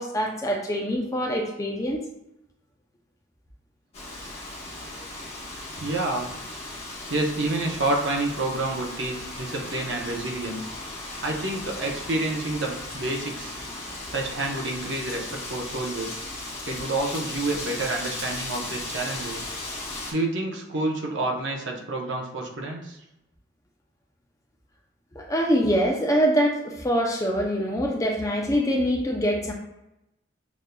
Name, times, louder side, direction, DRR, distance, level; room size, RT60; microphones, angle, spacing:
voice 1, 0.0-2.0 25.1-29.5, equal, 15° left, 0 dB, 0.5 m, -24 dB
Wind, 3.9-20.1, left 2 dB, 30° left, 0.8 m, -36 dB
voice 2, 4.7-5.1 5.7-6.3 7.1-10.7 11.2-13.5 13.8-19.5 20.1-23.0, right 2 dB, 65° right, 0 dB, 0.8 m, -29 dB
6.1 x 2.5 x 2.2 m, 0.90 s
head